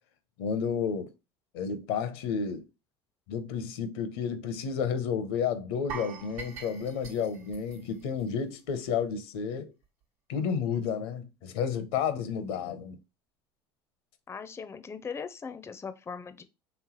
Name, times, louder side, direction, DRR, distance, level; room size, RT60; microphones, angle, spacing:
voice 1, 0.4-1.1 1.5-2.6 3.3-9.7 10.3-13.0, left 6 dB, 75° left, 0.6 m, -31 dB
sound 1, 5.9-8.9 9.2-9.4 9.8-9.9, right 6 dB, 70° right, 1.1 m, -44 dB
voice 2, 14.3-16.4, left 6 dB, 20° left, 0.5 m, -39 dB
3.4 x 3.1 x 2.9 m
hypercardioid pair, 80°, 13 cm